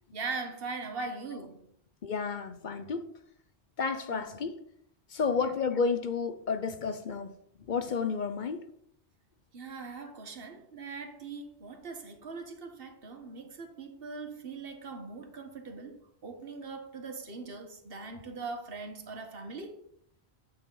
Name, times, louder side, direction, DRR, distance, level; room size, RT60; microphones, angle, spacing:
voice 1, 0.1-1.6 4.1-4.2 5.4-5.5 9.5-19.8, right 4 dB, 60° right, 1.3 m, -41 dB
voice 2, 2.0-3.1 3.8-4.6 5.1-7.3 7.7-8.6, left 5 dB, 50° left, 0.7 m, -31 dB
9.0 x 6.7 x 3.8 m
omnidirectional pair, 1.1 m